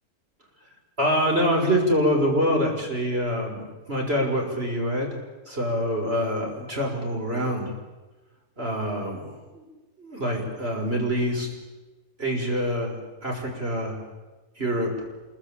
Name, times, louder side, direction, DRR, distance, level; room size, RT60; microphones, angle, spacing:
voice 1, 1.0-5.1 5.5-7.7 8.6-9.6 10.0-11.5 12.2-13.0 13.2-14.0 14.6-14.9, equal, 40° right, 1 dB, 6.2 m, -25 dB
26.5 x 22.5 x 8.7 m, 1.2 s
omnidirectional pair, 1.6 m